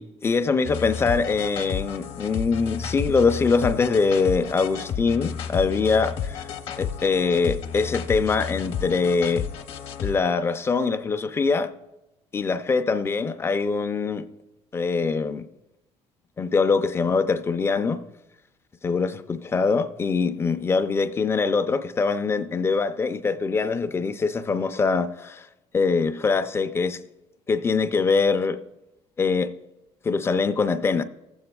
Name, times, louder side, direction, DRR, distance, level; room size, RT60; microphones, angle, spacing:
voice 1, 0.0-6.5 6.8-9.5 10.0-11.7 12.3-14.3 14.7-15.5 16.4-18.0 18.8-25.5 25.7-27.0 27.5-28.6 29.2-29.5 30.0-31.0, left 4 dB, 20° left, 0.4 m, -23 dB
sound 1, 0.6-10.2, left 7 dB, 55° left, 0.8 m, -32 dB
18.0 x 7.8 x 2.3 m
cardioid pair, 150°, 12 cm